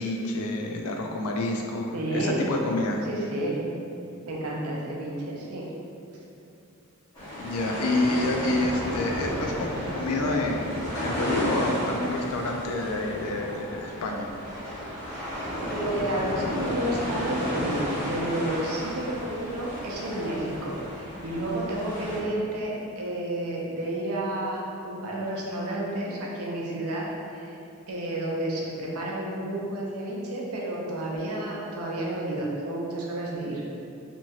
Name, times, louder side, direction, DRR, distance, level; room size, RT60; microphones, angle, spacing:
voice 1, 0.0-3.1 7.3-10.7 11.0-14.3, left 2 dB, 85° left, 2 dB, 0.4 m, -28 dB
voice 2, 1.9-2.5 3.1-3.6 4.3-5.8 15.7-27.5 27.9-33.6, right 1 dB, 85° right, -3 dB, 0.5 m, -31 dB
sound 1, 7.1-22.2, equal, 15° left, 0.8 m, -33 dB
2.9 x 2.7 x 2.3 m, 2.6 s
head